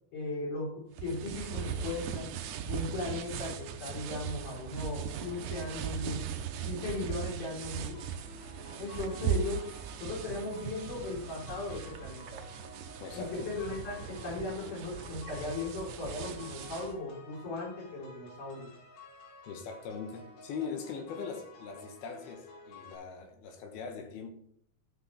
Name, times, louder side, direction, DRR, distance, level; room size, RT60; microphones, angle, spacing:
voice 1, 0.1-2.3 2.7-6.3 6.7-8.0 8.8-9.7 10.0-12.4 13.1-18.7, left 2 dB, 50° left, 5.4 m, -37 dB
sound 1, 1.0-16.9, right 7 dB, 75° right, 1.8 m, -39 dB
sound 2, 7.9-22.9, left 3 dB, 90° left, 4.7 m, -53 dB
voice 2, 13.0-13.5 19.5-24.3, left 5 dB, 70° left, 3.1 m, -41 dB
13.5 x 6.2 x 4.1 m
omnidirectional pair, 4.7 m